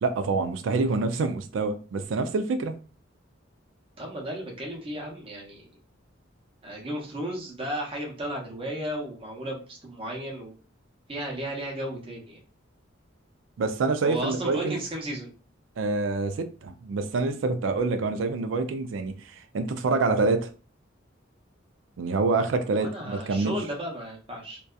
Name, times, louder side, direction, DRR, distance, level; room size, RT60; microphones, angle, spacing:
voice 1, 0.0-2.7 13.6-14.8 15.8-20.5 22.0-23.6, right 3 dB, 80° right, 0.4 m, -26 dB
voice 2, 4.0-5.7 6.6-10.5 11.1-12.4 14.0-15.3 22.8-24.6, right 1 dB, 30° right, 0.7 m, -34 dB
2.6 x 2.2 x 2.3 m
head